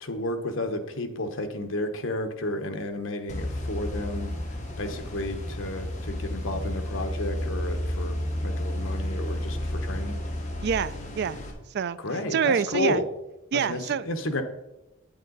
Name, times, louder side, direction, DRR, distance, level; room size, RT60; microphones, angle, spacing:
voice 1, 0.0-10.2 12.0-13.0 13.7-14.4, left 1 dB, 75° left, 1.2 m, -32 dB
sound 1, 3.3-11.5, left 1 dB, 35° left, 2.0 m, -31 dB
voice 2, 10.6-11.4 11.7-12.0 12.3-13.0 13.5-14.1, right 7 dB, 55° right, 0.4 m, -26 dB
8.8 x 8.6 x 4.0 m
head